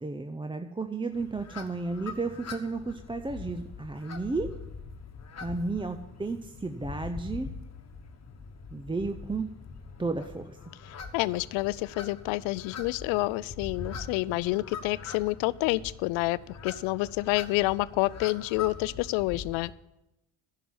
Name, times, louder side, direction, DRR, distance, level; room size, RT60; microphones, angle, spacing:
voice 1, 0.0-4.5 5.4-7.5 8.7-9.5 10.0-10.6, right 3 dB, 10° right, 7 dB, 0.6 m, -33 dB
sound 1, 1.1-19.7, left 5 dB, 35° left, 1.4 m, -43 dB
voice 2, 10.9-19.7, left 20 dB, 75° left, 20 dB, 0.5 m, -28 dB
11.0 x 5.9 x 8.7 m, 0.92 s
supercardioid pair, 65°, 47 cm